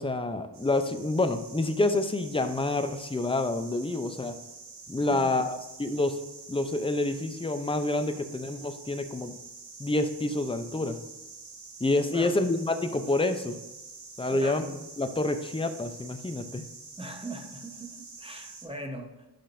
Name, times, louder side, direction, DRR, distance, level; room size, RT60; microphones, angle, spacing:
voice 1, 0.0-4.4 4.9-6.2 6.5-9.3 9.8-11.0 11.8-13.6 14.2-14.6 15.0-16.6, left 2 dB, 15° left, 9 dB, 0.5 m, -28 dB
sound 1, 0.5-18.7, right 4 dB, 70° right, 1.5 m, -47 dB
voice 2, 5.1-5.5 12.1-12.4 14.3-14.6 17.0-19.3, right 1 dB, 15° right, 3 dB, 0.9 m, -40 dB
11.0 x 5.1 x 2.6 m, 1.1 s
wide cardioid pair, 110°, 41 cm